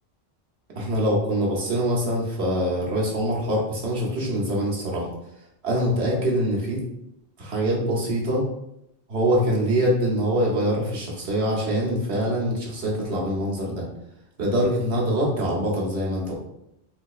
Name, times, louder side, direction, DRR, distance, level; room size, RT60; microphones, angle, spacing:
voice 1, 0.7-5.1 5.6-6.8 7.4-8.4 9.1-13.8 14.4-16.3, equal, 70° right, -3 dB, 1.2 m, -24 dB
3.8 x 2.8 x 2.4 m, 0.81 s
omnidirectional pair, 1.1 m